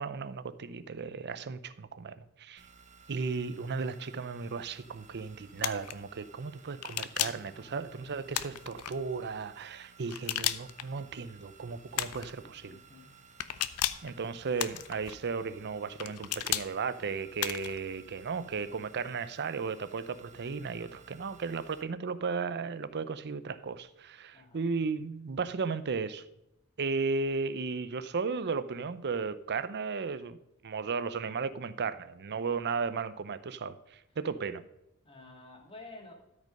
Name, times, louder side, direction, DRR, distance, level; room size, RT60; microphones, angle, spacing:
voice 1, 0.0-2.6 3.1-12.8 14.0-26.2 26.8-30.4 30.6-34.6, right 5 dB, 50° right, 14 dB, 0.6 m, -35 dB
sound 1, 2.6-21.8, right 5 dB, 35° right, 1.1 m, -57 dB
sound 2, 5.6-5.9 6.8-7.5 8.3-8.9 10.1-10.8 11.9-12.3 13.4-14.1 14.6-15.1 16.0-16.7 17.4-17.8, left 12 dB, 75° left, 0.6 m, -33 dB
voice 2, 7.2-8.2 12.4-13.1 24.3-24.7 35.0-36.1, left 2 dB, 25° left, 1 dB, 2.4 m, -52 dB
13.0 x 5.3 x 5.2 m, 0.87 s
head